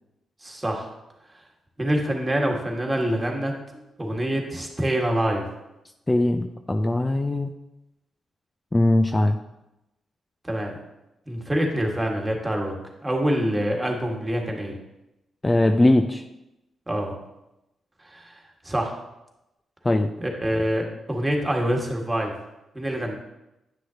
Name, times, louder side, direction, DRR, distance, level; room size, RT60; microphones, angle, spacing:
voice 1, 0.4-0.9 1.8-3.5 4.0-5.5 10.4-10.8 11.3-12.7 13.0-14.8 16.9-17.1 18.1-18.4 18.6-19.0 20.2-22.3 22.7-23.2, right 1 dB, 20° right, 1 dB, 1.8 m, -25 dB
voice 2, 6.1-7.5 8.7-9.4 15.4-16.2 19.8-20.1, left 1 dB, 25° left, 6 dB, 0.5 m, -20 dB
9.5 x 6.2 x 2.9 m, 0.93 s
hypercardioid pair, 45°, 0 cm